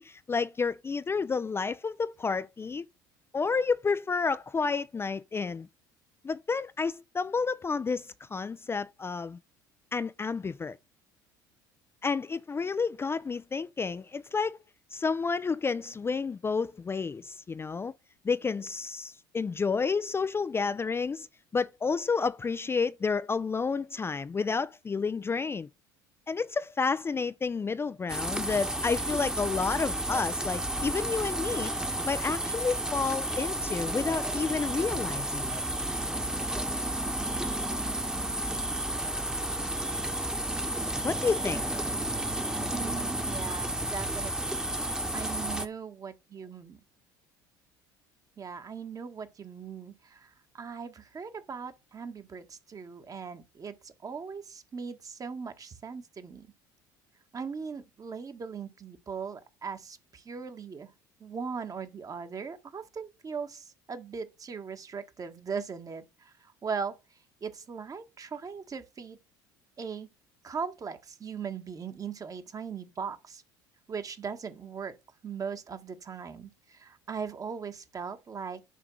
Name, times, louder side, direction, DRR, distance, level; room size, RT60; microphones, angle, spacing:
voice 1, 0.0-2.9 3.3-5.7 6.2-9.4 9.9-10.8 12.0-14.6 14.9-17.9 18.2-21.3 21.5-25.7 26.3-35.6 41.0-41.6, left 5 dB, 25° left, 0.5 m, -30 dB
sound 1, 28.1-45.7, right 1 dB, 5° right, 1.2 m, -32 dB
voice 2, 42.7-44.6 45.1-46.8 48.4-56.5 57.3-60.9 61.2-67.0 67.4-69.2 69.8-70.1 70.4-73.4 73.9-74.9 75.2-78.6, right 6 dB, 35° right, 1.5 m, -39 dB
9.9 x 3.5 x 6.3 m
hypercardioid pair, 70°, 11 cm